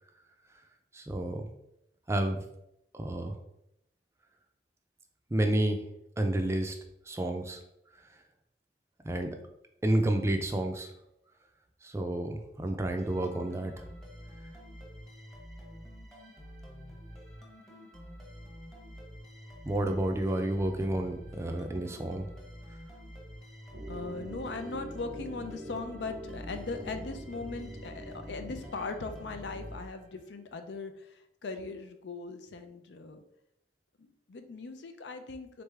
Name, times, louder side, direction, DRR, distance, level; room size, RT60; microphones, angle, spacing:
voice 1, 0.9-1.5 2.1-2.4 2.9-3.4 5.3-5.8 6.2-6.8 7.1-7.6 9.0-9.4 9.8-10.9 11.8-13.8 19.6-22.3, right 1 dB, 15° right, 5 dB, 0.4 m, -30 dB
sound 1, 13.0-30.5, equal, ahead, 0.8 m, -48 dB
sound 2, 23.7-29.8, equal, 85° right, 0.7 m, -45 dB
voice 2, 23.9-33.2 34.0-35.6, left 3 dB, 80° left, 8 dB, 0.5 m, -39 dB
3.9 x 3.4 x 3.3 m, 0.80 s
head